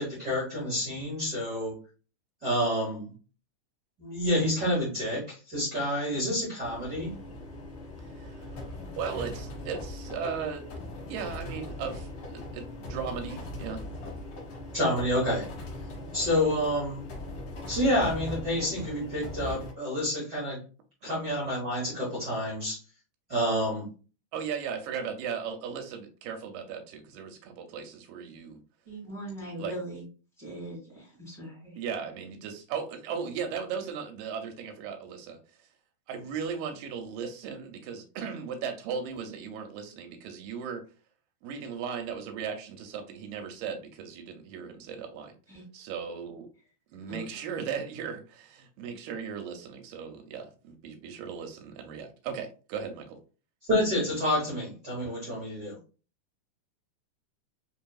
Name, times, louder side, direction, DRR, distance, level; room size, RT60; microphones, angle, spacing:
voice 1, 0.0-1.8 2.4-3.1 4.0-7.1 14.7-15.5 16.1-17.0 17.7-20.6 21.0-22.8 23.3-23.9 53.7-55.8, left 1 dB, 55° right, -6 dB, 1.1 m, -28 dB
sound 1, 6.6-19.7, left 1 dB, 65° left, 1.4 m, -40 dB
voice 2, 8.2-10.7 11.1-13.8 21.0-21.1 24.3-28.6 29.6-29.8 31.8-35.4 36.1-40.8 41.4-45.3 45.7-46.5 46.9-53.2, right 6 dB, 90° right, 4 dB, 2.2 m, -37 dB
voice 3, 28.8-30.0 30.4-31.8 45.5-45.6 47.1-47.2, right 1 dB, 15° left, -6 dB, 1.2 m, -40 dB
5.5 x 2.7 x 2.3 m, 0.36 s
omnidirectional pair, 3.8 m